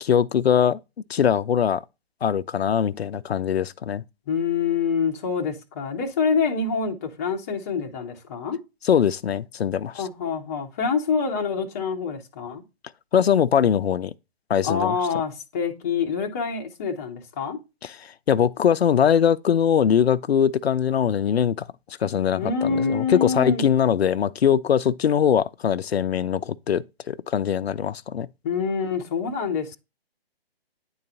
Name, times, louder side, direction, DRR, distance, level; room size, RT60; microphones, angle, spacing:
voice 1, 0.0-0.8 1.1-1.8 2.2-4.0 8.8-10.0 13.1-14.1 14.5-15.0 17.8-21.7 22.0-28.3, left 8 dB, 80° left, 0.5 m, -22 dB
voice 2, 4.3-8.6 9.9-12.6 14.6-17.6 22.4-23.6 28.4-29.8, left 5 dB, 15° left, 0.6 m, -26 dB
9.8 x 3.9 x 2.7 m
figure-of-eight pair, 145°, 31 cm